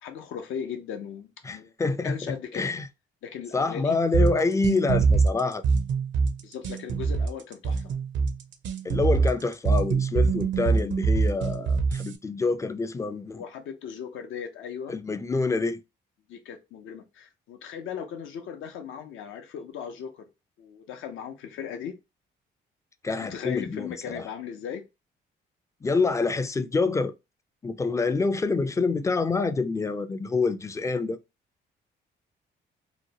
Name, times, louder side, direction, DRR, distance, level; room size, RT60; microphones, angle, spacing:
voice 1, 0.0-1.7 2.0-2.7 3.2-4.0 6.4-7.9 13.3-15.0 16.3-20.3 20.6-22.0 23.1-24.8, left 8 dB, 80° left, 0.7 m, -38 dB
voice 2, 1.4-2.9 3.5-5.6 8.8-13.4 14.9-15.8 23.0-24.2 25.8-27.1 27.6-31.2, left 3 dB, 15° left, 0.3 m, -27 dB
sound 1, 4.1-12.1, right 5 dB, 70° right, 0.6 m, -24 dB
2.9 x 2.2 x 2.8 m
cardioid pair, 90°, 20 cm